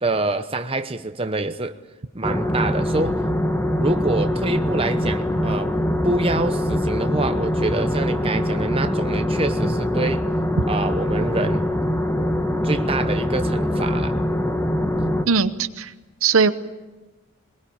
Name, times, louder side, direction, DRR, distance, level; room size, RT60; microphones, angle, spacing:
voice 1, 0.0-1.8 2.1-3.2 3.8-5.7 6.0-10.3 10.7-11.6 12.6-14.2, right 2 dB, 25° right, 0.9 m, -26 dB
sound 1, 2.2-15.2, left 1 dB, 10° left, 1.3 m, -23 dB
voice 2, 15.3-15.9 16.2-16.5, right 5 dB, 65° right, 0.9 m, -19 dB
21.5 x 21.5 x 8.8 m
head